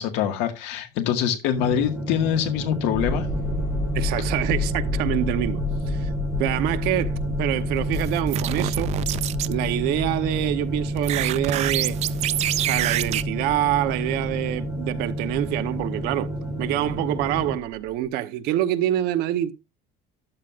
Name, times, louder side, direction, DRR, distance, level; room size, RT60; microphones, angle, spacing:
voice 1, 0.0-3.3, left 10 dB, 75° left, 1.8 m, -24 dB
sound 1, 1.5-17.6, right 1 dB, 5° right, 3.1 m, -30 dB
sound 2, 2.9-18.0, left 2 dB, 20° left, 4.3 m, -32 dB
voice 2, 3.9-6.1 6.4-8.9 9.5-12.0 12.6-16.3 16.6-19.5, right 13 dB, 60° right, 0.9 m, -26 dB
sound 3, 7.8-9.5 11.0-13.2, right 13 dB, 40° right, 0.4 m, -27 dB
13.0 x 7.6 x 2.5 m
cardioid pair, 170°, 18 cm